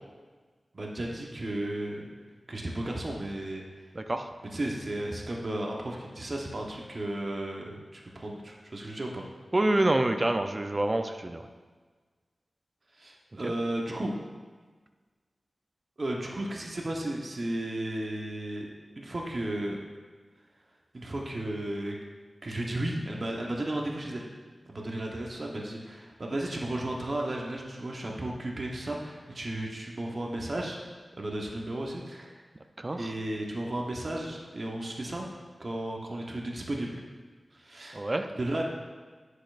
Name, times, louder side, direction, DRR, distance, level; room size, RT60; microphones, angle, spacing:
voice 1, 0.7-2.0 2.5-3.7 4.5-9.2 13.0-14.1 16.0-18.7 19.0-19.8 20.9-22.0 22.4-24.2 24.7-30.8 31.2-32.4 32.9-35.3 35.6-37.0 37.5-38.1 38.4-38.6, right 1 dB, 45° right, -1 dB, 1.0 m, -34 dB
voice 2, 3.9-4.3 9.5-11.4 13.4-13.5 32.8-33.1 37.9-38.3, right 1 dB, 30° right, 6 dB, 0.5 m, -27 dB
10.0 x 6.4 x 2.5 m, 1.4 s
wide cardioid pair, 85°, 0 cm